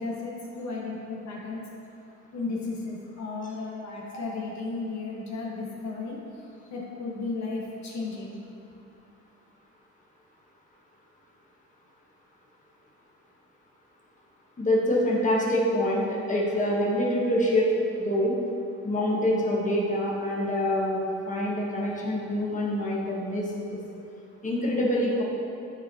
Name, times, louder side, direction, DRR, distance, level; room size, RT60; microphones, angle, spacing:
voice 1, 0.0-1.6 2.3-6.2 6.7-8.4, left 3 dB, 65° left, -3 dB, 1.2 m, -34 dB
voice 2, 14.6-17.7 18.0-18.3 18.8-23.8 24.4-25.2, left 1 dB, 25° left, -4 dB, 1.3 m, -26 dB
9.4 x 4.4 x 2.7 m, 2.8 s
cardioid pair, 90°, 30 cm